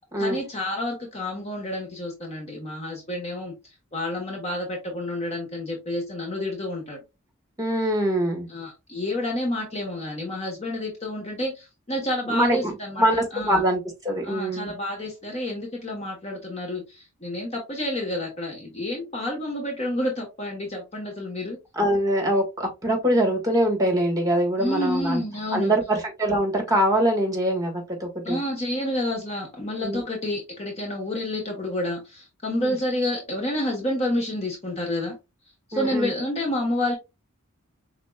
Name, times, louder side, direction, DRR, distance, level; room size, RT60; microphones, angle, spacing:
voice 1, 0.2-7.0 8.5-13.0 13.3-13.6 14.2-21.6 24.6-25.8 28.2-35.1 35.7-36.9, left 1 dB, 30° left, 1.2 m, -29 dB
voice 2, 7.6-8.5 12.3-14.7 21.7-25.2 25.5-28.4 29.8-30.0 32.6-32.8 35.7-36.1, right 1 dB, 15° right, 1.6 m, -23 dB
5.1 x 3.7 x 2.3 m
head